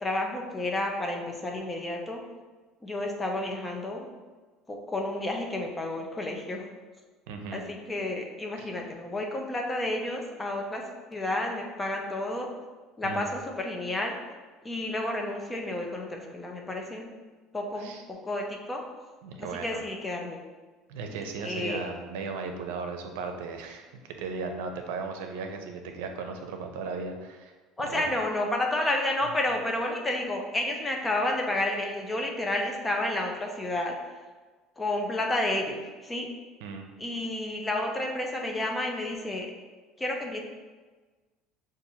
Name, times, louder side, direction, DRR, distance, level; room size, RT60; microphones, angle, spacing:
voice 1, 0.0-2.2 2.8-4.1 4.7-6.7 7.5-10.8 11.1-12.5 13.0-14.2 14.6-17.1 17.5-18.8 19.4-20.4 21.4-21.9 27.8-34.1 34.8-36.3 37.0-39.5 40.0-40.4, left 1 dB, 15° left, 1 dB, 0.6 m, -31 dB
voice 2, 7.3-7.7 8.6-8.7 13.0-13.3 17.8-18.0 19.2-19.8 20.9-27.5 27.9-28.1 36.6-36.9, right 4 dB, 85° right, 4 dB, 0.6 m, -36 dB
6.7 x 2.5 x 2.8 m, 1.3 s
supercardioid pair, 120°, 0 cm